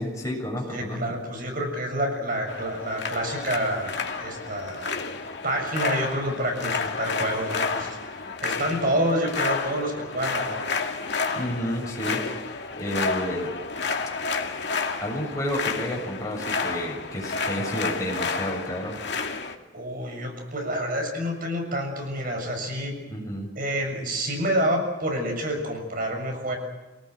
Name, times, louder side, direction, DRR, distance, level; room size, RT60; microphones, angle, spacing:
voice 1, 0.0-1.1 8.2-8.3 11.3-12.5 12.8-13.5 15.0-19.0 23.1-23.5, equal, 20° left, -1 dB, 7.2 m, -30 dB
voice 2, 0.7-5.0 5.4-10.6 19.7-23.0 23.5-26.6, right 1 dB, 50° right, 3 dB, 6.9 m, -28 dB
sound 1, 2.5-19.5, left 4 dB, 60° left, 2.4 m, -30 dB
27.0 x 19.0 x 7.9 m, 1.1 s
head